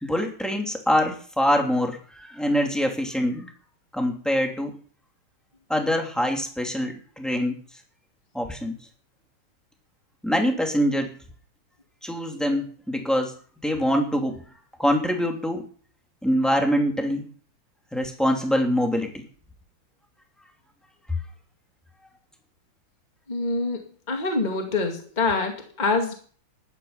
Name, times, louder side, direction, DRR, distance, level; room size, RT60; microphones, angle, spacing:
voice 1, 0.0-3.5 3.9-4.7 5.7-7.5 8.3-8.8 10.2-11.1 12.0-13.3 13.6-14.4 14.8-15.6 16.2-17.3 17.9-19.2, equal, ahead, 3 dB, 2.7 m, -24 dB
voice 2, 23.3-23.8 24.1-26.1, left 3 dB, 20° left, 3 dB, 2.3 m, -25 dB
15.5 x 11.5 x 5.6 m, 0.44 s
omnidirectional pair, 2.3 m